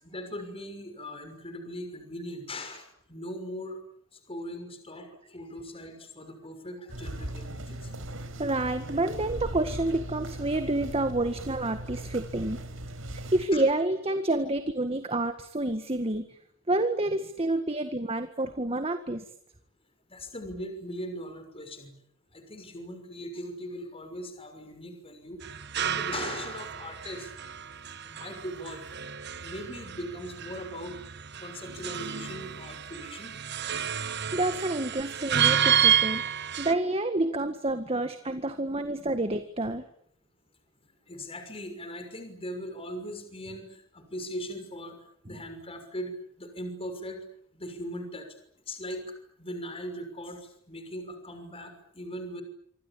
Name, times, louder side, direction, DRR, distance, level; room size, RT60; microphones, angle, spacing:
voice 1, 0.0-3.8 4.1-7.9 13.5-13.7 20.1-21.9 22.3-25.4 25.8-27.3 28.0-28.9 29.4-31.0 31.4-33.4 41.1-44.9 45.2-46.1 46.4-47.2 47.5-48.3 48.7-49.0 49.4-52.4, equal, 30° left, 7 dB, 6.2 m, -39 dB
sound 1, 6.9-13.5, right 1 dB, 75° right, 5.0 m, -38 dB
voice 2, 8.4-12.6 13.3-16.2 16.7-19.2 34.3-36.2 36.6-39.8, right 2 dB, 30° right, 9 dB, 1.8 m, -28 dB
sound 2, 25.4-36.7, right 8 dB, 55° right, 1.5 m, -30 dB
26.0 x 26.0 x 8.7 m, 0.67 s
head